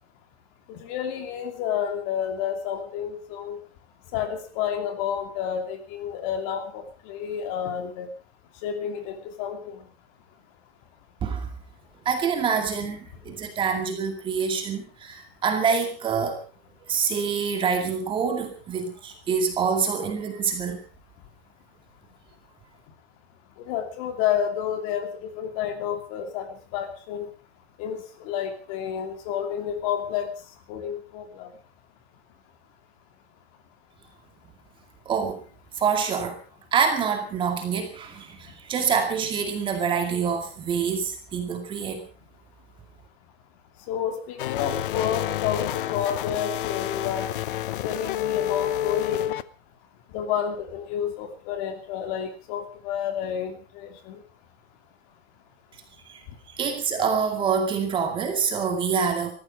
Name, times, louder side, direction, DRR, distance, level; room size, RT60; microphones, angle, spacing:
voice 1, 0.7-3.6 4.1-8.1 8.6-9.8 23.7-27.3 27.8-30.3 30.7-31.5 43.9-47.3 47.8-49.4 50.1-54.2, left 9 dB, 35° left, 7 dB, 2.8 m, -30 dB
voice 2, 12.0-16.4 16.9-20.8 35.1-35.4 35.7-36.4 36.7-42.1 56.1-56.2 56.5-59.3, right 6 dB, 15° right, 5 dB, 2.3 m, -26 dB
sound 1, 44.4-49.4, left 12 dB, 55° left, 1.0 m, -29 dB
19.5 x 14.5 x 5.1 m, 0.36 s
supercardioid pair, 170°, 31 cm